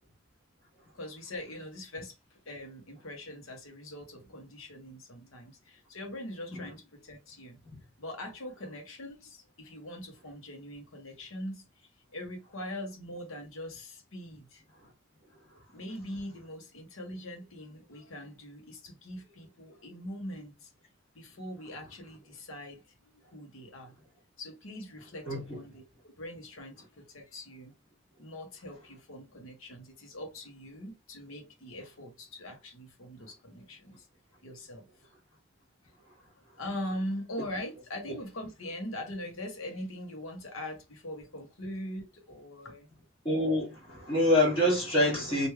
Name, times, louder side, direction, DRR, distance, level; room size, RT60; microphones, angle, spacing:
voice 1, 0.9-2.1 2.5-7.6 8.0-14.6 15.7-20.7 21.1-22.8 23.2-23.9 24.4-27.7 28.2-34.1 34.4-34.9 36.6-42.9, left 1 dB, 90° left, 1.1 m, -42 dB
voice 2, 43.2-45.5, left 1 dB, 25° left, 1.3 m, -26 dB
3.2 x 2.6 x 3.3 m
head